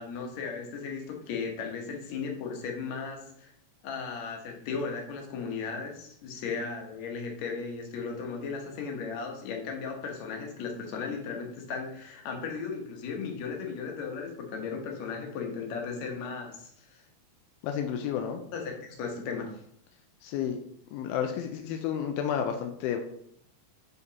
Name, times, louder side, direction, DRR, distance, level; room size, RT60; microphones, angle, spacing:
voice 1, 0.0-3.5 3.8-17.0 18.5-19.6, left 5 dB, 65° left, 1 dB, 2.1 m, -36 dB
voice 2, 17.6-18.4 20.2-20.6 20.9-23.0, left 8 dB, 90° left, 5 dB, 2.5 m, -31 dB
9.5 x 4.0 x 2.8 m, 0.70 s
omnidirectional pair, 4.2 m